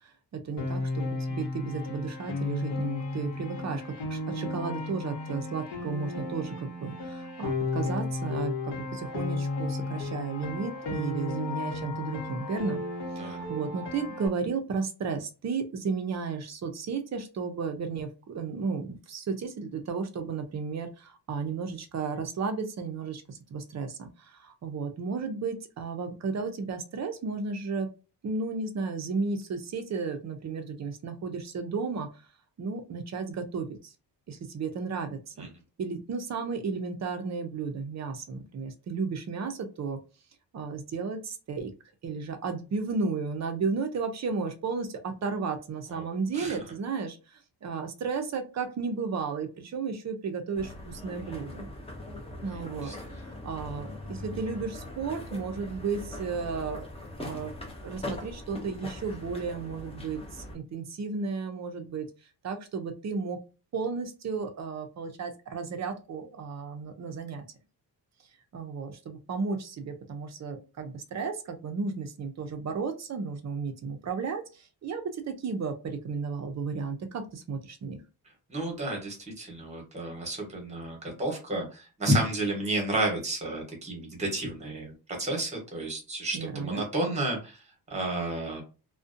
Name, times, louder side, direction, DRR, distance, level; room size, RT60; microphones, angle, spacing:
voice 1, 0.0-12.8 13.2-27.9 28.2-32.1 32.6-33.9 34.3-35.5 35.8-40.0 40.5-41.7 42.0-51.7 52.4-56.8 57.2-57.5 57.8-62.1 62.4-63.4 63.7-67.4 68.5-78.0 86.3-86.9, right 4 dB, 40° right, 6 dB, 0.4 m, -33 dB
Piano, 0.6-14.3, left 2 dB, 75° left, 0.8 m, -34 dB
sound 1, 50.5-60.5, left 1 dB, 15° left, 0.5 m, -41 dB
voice 2, 52.5-52.9 78.5-88.6, right 1 dB, 15° right, 0 dB, 0.9 m, -31 dB
2.5 x 2.1 x 2.5 m, 0.32 s
wide cardioid pair, 175°, 42 cm